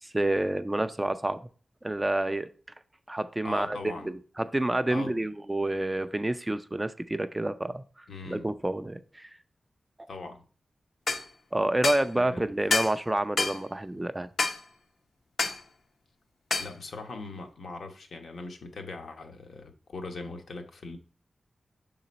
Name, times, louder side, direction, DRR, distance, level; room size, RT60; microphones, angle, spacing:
voice 1, 0.0-1.4 1.8-2.5 3.1-3.8 4.4-9.3 11.5-14.3, right 1 dB, 15° right, 0.3 m, -28 dB
voice 2, 3.4-4.1 4.9-5.1 8.1-8.5 10.1-10.4 12.1-12.4 16.6-21.0, left 3 dB, 75° left, 1.0 m, -40 dB
sound 1, 11.1-11.2 11.8-12.1 12.7-13.0 13.4-13.6 14.4-14.6 15.4-15.6 16.5-16.7, left 3 dB, 60° left, 0.7 m, -27 dB
6.8 x 3.9 x 4.1 m
wide cardioid pair, 170°, 0 cm